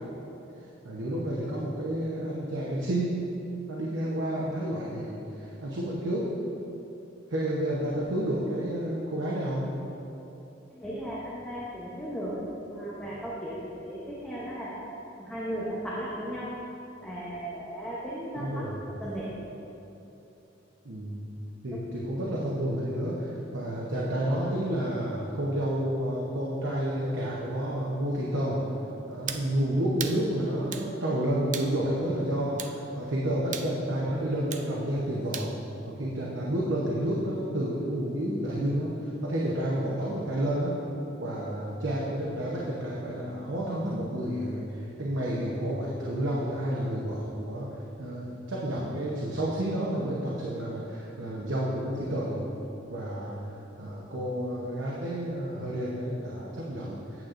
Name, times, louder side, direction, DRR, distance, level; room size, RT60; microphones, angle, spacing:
voice 1, 0.8-3.2 3.7-6.3 7.3-9.7 18.3-18.8 20.8-21.2 21.6-28.6 29.1-35.5 35.9-40.8 41.2-47.7 48.0-52.4 52.9-53.4 53.8-57.3, right 1 dB, 75° right, -5 dB, 0.9 m, -30 dB
voice 2, 10.7-12.4 12.7-16.5 17.0-19.3, equal, 5° left, -7 dB, 0.8 m, -36 dB
sound 1, 29.3-29.5 30.0-30.2 30.7-30.9 31.5-31.7 32.6-32.8 33.5-33.7 34.5-34.7 35.3-35.5, right 8 dB, 40° right, 0.4 m, -35 dB
9.0 x 7.6 x 2.5 m, 3.0 s
head